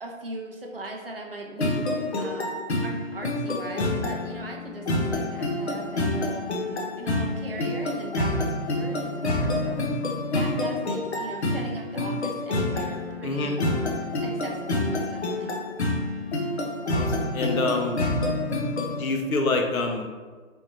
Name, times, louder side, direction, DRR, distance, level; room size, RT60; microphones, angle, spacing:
voice 1, 0.0-1.9 2.2-2.6 2.8-10.0 10.3-15.5, right 2 dB, 45° right, 0 dB, 0.4 m, -39 dB
sound 1, 1.6-19.0, left 2 dB, 50° left, 0.6 m, -28 dB
voice 2, 13.2-13.6 16.9-18.0 19.0-20.1, left 3 dB, 85° left, 3 dB, 0.8 m, -26 dB
3.4 x 2.6 x 2.9 m, 1.4 s
hypercardioid pair, 180°, 41 cm